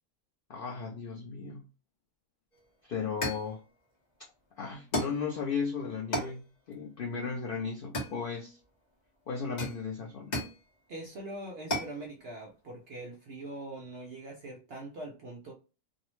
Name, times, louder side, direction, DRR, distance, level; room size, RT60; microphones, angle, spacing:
voice 1, 0.5-1.6 2.8-3.6 4.6-8.6 9.3-10.4, left 5 dB, 80° left, 0.5 m, -35 dB
sound 1, 2.5-2.6 3.2-3.5 4.9-5.3 6.1-6.4 7.9-8.6 9.6-10.6 11.7-12.0, equal, 40° left, 0.7 m, -34 dB
voice 2, 10.9-15.5, right 2 dB, 60° right, 0.6 m, -42 dB
2.6 x 2.0 x 3.0 m
omnidirectional pair, 1.5 m